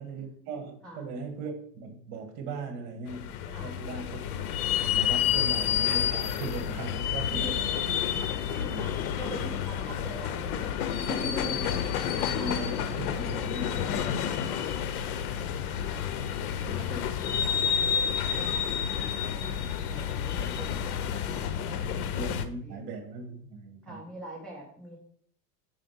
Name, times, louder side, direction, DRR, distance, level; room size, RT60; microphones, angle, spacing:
voice 1, 0.0-7.5 8.7-8.8 11.4-11.6 12.2-14.5 16.6-16.9 19.9-20.0 20.3-20.9 21.6-21.8 22.1-24.0, right 3 dB, 50° right, 5 dB, 1.8 m, -39 dB
sound 1, 3.1-22.4, left 9 dB, 75° left, 0.8 m, -30 dB
voice 2, 7.1-7.8 8.5-11.8 12.4-12.6 13.8-15.3 15.8-19.6 19.9-21.5 21.8-22.0 22.3-22.9 23.8-25.0, equal, ahead, -6 dB, 1.8 m, -44 dB
5.1 x 4.9 x 5.6 m, 0.63 s
supercardioid pair, 125°, 45 cm